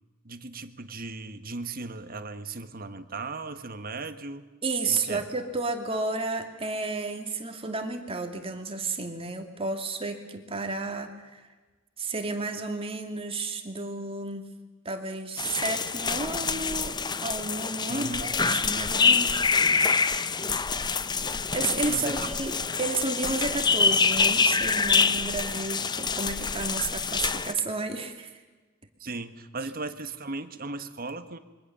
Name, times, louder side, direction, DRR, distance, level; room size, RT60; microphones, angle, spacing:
voice 1, 0.2-4.5 4.9-5.2 17.9-18.4 21.9-22.4 29.0-31.4, right 3 dB, 45° right, 9 dB, 1.6 m, -37 dB
voice 2, 4.6-11.4 12.0-14.5 14.8-20.4 21.5-28.3, right 3 dB, 30° right, 5 dB, 2.6 m, -32 dB
sound 1, 15.4-27.5, left 5 dB, 20° left, 0.7 m, -26 dB
27.0 x 23.5 x 6.9 m, 1.3 s
head